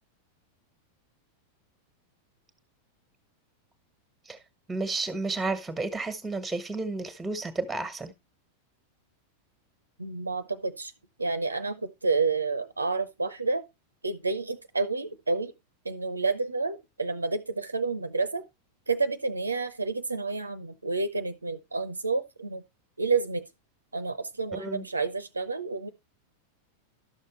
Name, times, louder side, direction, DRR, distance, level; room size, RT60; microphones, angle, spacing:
voice 1, 4.7-8.1 24.5-24.9, right 3 dB, 10° right, 1.4 m, -32 dB
voice 2, 10.0-10.9 11.2-13.7 14.0-15.5 15.8-18.4 18.9-22.6 23.0-23.5 23.9-25.9, right 4 dB, 80° right, 0.7 m, -29 dB
12.0 x 6.5 x 3.1 m
figure-of-eight pair, 90°, 0 cm